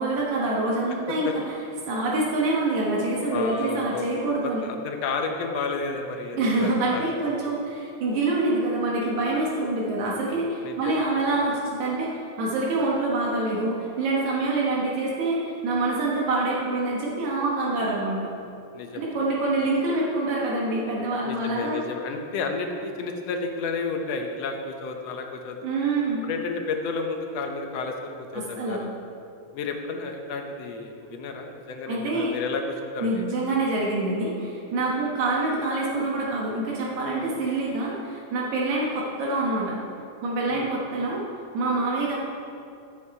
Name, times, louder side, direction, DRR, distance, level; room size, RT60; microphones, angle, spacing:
voice 1, 0.0-1.4 1.9-4.6 6.3-18.3 18.9-21.8 25.6-26.2 28.3-28.9 31.9-32.3 33.0-39.8 40.2-41.2 41.5-42.2, right 2 dB, 80° right, -4 dB, 2.7 m, -26 dB
voice 2, 3.3-4.1 4.4-7.3 10.6-10.9 11.3-11.4 18.7-19.3 21.2-25.6 26.2-28.9 29.5-33.3 40.5-40.7, left 4 dB, 70° left, 4 dB, 1.9 m, -32 dB
13.0 x 8.4 x 4.7 m, 2.6 s
omnidirectional pair, 3.3 m